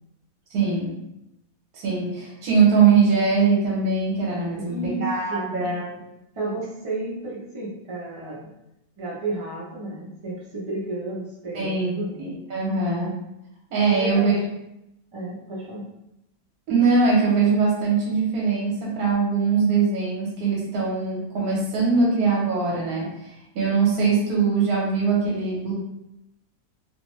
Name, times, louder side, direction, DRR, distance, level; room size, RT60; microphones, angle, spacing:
voice 1, 0.5-0.9 1.7-5.9 11.5-11.9 12.2-13.1 13.7-14.4 16.7-25.7, right 5 dB, 70° right, -4 dB, 1.2 m, -22 dB
voice 2, 4.6-5.5 6.3-8.4 9.0-12.3 13.9-14.3 15.1-15.8, right 2 dB, 55° right, -6 dB, 0.3 m, -32 dB
2.8 x 2.0 x 3.0 m, 0.87 s
omnidirectional pair, 1.7 m